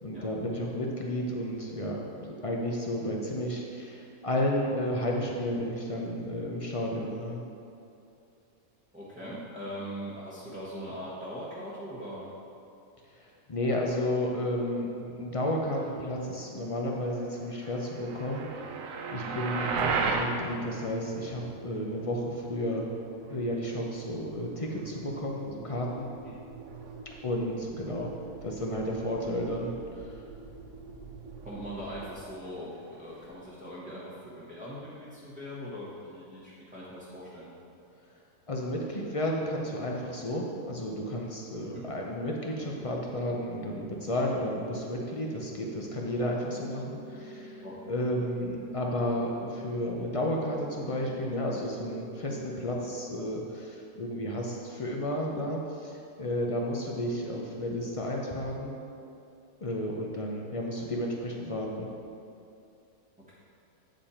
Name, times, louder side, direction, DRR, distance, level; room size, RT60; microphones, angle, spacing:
voice 1, 0.0-7.4 13.1-22.8 23.3-26.1 27.2-28.1 28.4-29.7 30.0-30.1 38.5-58.7 59.6-61.9, left 1 dB, 50° left, -1 dB, 0.4 m, -32 dB
voice 2, 8.9-12.3 19.1-19.4 26.2-26.4 31.4-37.5 41.7-41.9 47.6-47.9, equal, 5° right, -9 dB, 0.9 m, -41 dB
sound 1, 18.1-20.3, right 5 dB, 65° right, 1.0 m, -31 dB
Engine, 19.7-33.6, right 4 dB, 85° right, 1.3 m, -47 dB
sound 2, 42.7-52.7, equal, 90° left, 1.8 m, -46 dB
8.8 x 5.2 x 4.3 m, 2.6 s
omnidirectional pair, 1.6 m